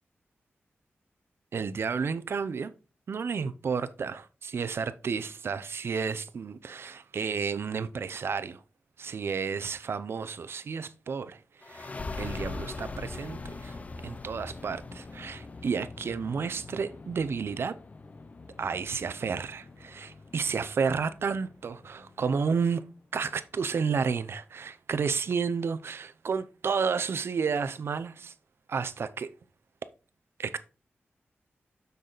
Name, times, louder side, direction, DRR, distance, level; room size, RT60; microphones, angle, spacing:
voice 1, 1.5-2.7 3.1-8.6 9.0-11.4 11.7-11.9 12.2-13.8 14.0-17.7 18.6-22.9 23.1-28.3 28.7-29.3 30.4-30.6, right 5 dB, 65° right, 0.7 m, -31 dB
sound 1, 11.6-22.9, left 3 dB, 35° left, 0.6 m, -42 dB
6.9 x 6.3 x 4.0 m
wide cardioid pair, 160°, 4 cm